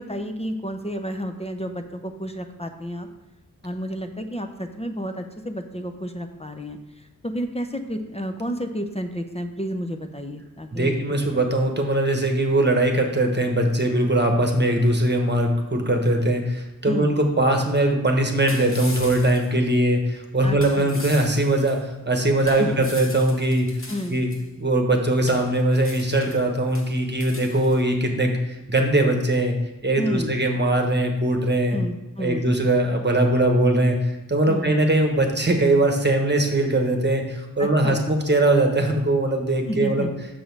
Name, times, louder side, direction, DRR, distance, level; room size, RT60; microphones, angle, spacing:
voice 1, 0.0-3.1 3.6-11.0 16.9-17.1 20.4-20.9 22.4-22.7 23.9-24.2 30.0-30.3 31.7-32.5 34.5-34.7 37.6-38.0 39.7-40.1, equal, 20° left, 6 dB, 0.6 m, -31 dB
voice 2, 10.7-23.7 24.1-24.3 24.6-29.5 29.8-31.8 32.2-40.1, right 1 dB, 30° right, 3 dB, 1.2 m, -21 dB
sound 1, 17.8-17.9 18.5-19.5 20.6-21.8 22.4-24.4 25.3-26.5 26.7-27.8, left 2 dB, 40° left, 1.1 m, -40 dB
6.4 x 6.2 x 4.6 m, 1.0 s
wide cardioid pair, 75°, 35 cm